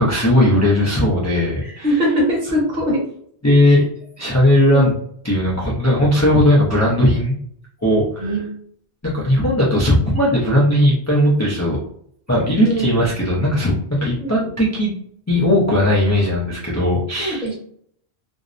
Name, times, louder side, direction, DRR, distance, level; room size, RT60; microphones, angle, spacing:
voice 1, 0.0-2.0 3.4-3.9 4.2-4.9 5.2-7.4 7.8-8.3 9.0-11.8 12.3-14.9 15.3-17.5, left 1 dB, 25° left, -6 dB, 0.3 m, -17 dB
voice 2, 1.6-3.0 3.7-3.8 4.7-4.9 8.2-8.5 12.5-13.0 14.2-14.5 17.2-17.6, equal, 45° right, -3 dB, 1.0 m, -22 dB
2.6 x 2.0 x 2.5 m, 0.64 s
omnidirectional pair, 1.1 m